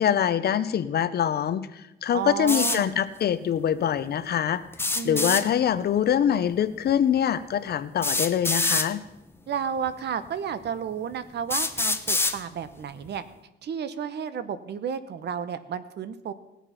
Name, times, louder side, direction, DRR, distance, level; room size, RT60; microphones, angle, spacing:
voice 1, 0.0-4.6 5.0-9.0, left 9 dB, 55° left, 14 dB, 0.7 m, -24 dB
voice 2, 2.1-2.9 4.9-5.4 9.5-13.2 13.6-16.3, right 7 dB, 60° right, 13 dB, 0.9 m, -32 dB
sound 1, 2.5-2.8 4.7-5.4 6.9-7.0 8.0-8.9 9.9-10.0 10.7-10.8 11.5-12.4, left 2 dB, 10° left, 0.8 m, -25 dB
18.5 x 7.2 x 5.7 m, 0.95 s
cardioid pair, 130°, 19 cm